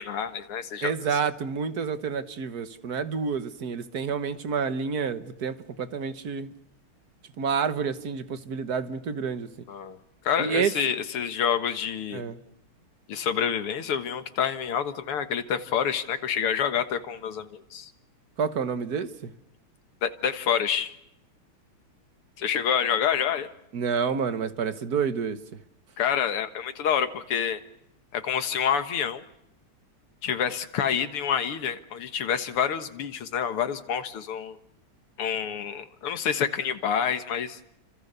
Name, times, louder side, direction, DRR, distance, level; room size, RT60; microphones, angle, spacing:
voice 1, 0.0-1.2 9.7-10.0 10.2-12.3 13.1-17.9 20.0-21.0 22.4-23.5 26.0-27.6 28.1-29.2 30.2-34.6 35.2-37.6, left 8 dB, 85° left, 2.4 m, -28 dB
voice 2, 0.8-6.5 7.4-9.5 10.4-10.7 12.1-12.4 18.4-19.3 23.7-25.4, right 6 dB, 50° right, 1.7 m, -29 dB
29.5 x 25.5 x 6.8 m
omnidirectional pair, 2.4 m